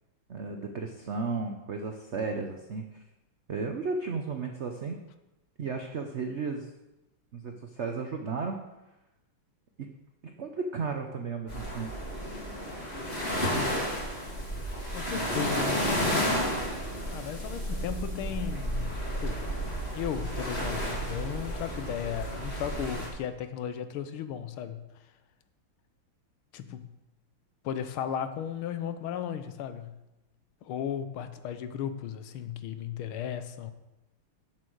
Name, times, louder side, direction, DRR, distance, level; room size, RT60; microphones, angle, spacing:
voice 1, 0.3-3.0 3.5-5.0 5.6-6.7 7.3-8.6 10.4-11.9, right 4 dB, 75° right, 4 dB, 0.6 m, -34 dB
sound 1, 11.5-23.1, equal, 30° left, 3.1 m, -32 dB
voice 2, 14.9-15.9 17.1-19.4 19.9-24.8 26.5-26.9 27.6-30.0 30.6-33.7, left 9 dB, 80° left, 10 dB, 1.7 m, -35 dB
8.0 x 7.5 x 6.4 m, 0.98 s
omnidirectional pair, 2.3 m